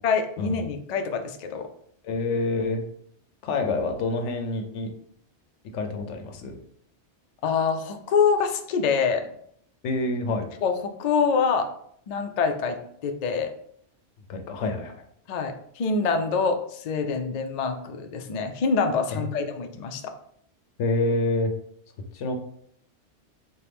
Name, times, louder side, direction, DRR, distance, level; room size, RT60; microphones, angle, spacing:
voice 1, 0.0-1.7 7.4-9.3 10.6-11.7 12.1-12.8 13.0-13.5 15.3-20.1, left 5 dB, 65° left, 6 dB, 0.4 m, -25 dB
voice 2, 2.0-2.8 3.4-4.9 5.7-6.6 9.8-10.4 14.3-15.0 19.1-19.4 20.8-21.5 22.1-22.4, left 2 dB, 80° left, 5 dB, 0.9 m, -27 dB
4.3 x 2.2 x 3.4 m, 0.66 s
omnidirectional pair, 1.2 m